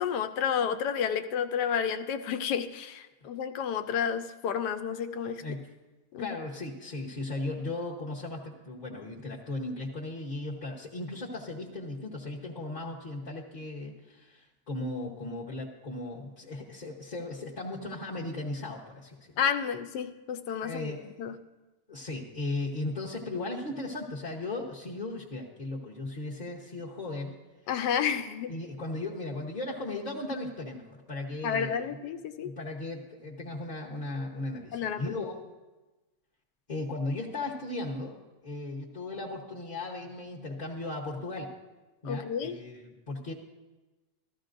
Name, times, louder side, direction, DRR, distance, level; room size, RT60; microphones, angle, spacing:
voice 1, 0.0-5.4 6.1-6.3 19.4-21.3 27.7-28.5 31.4-32.5 34.7-35.1 42.0-42.5, left 7 dB, 80° left, 10 dB, 1.2 m, -31 dB
voice 2, 6.2-19.3 20.6-21.1 21.9-27.4 28.5-31.9 32.4-35.4 36.7-38.2 38.4-41.5 42.0-43.3, left 2 dB, 35° left, -5 dB, 0.9 m, -36 dB
14.0 x 14.0 x 2.6 m, 1.1 s
omnidirectional pair, 1.8 m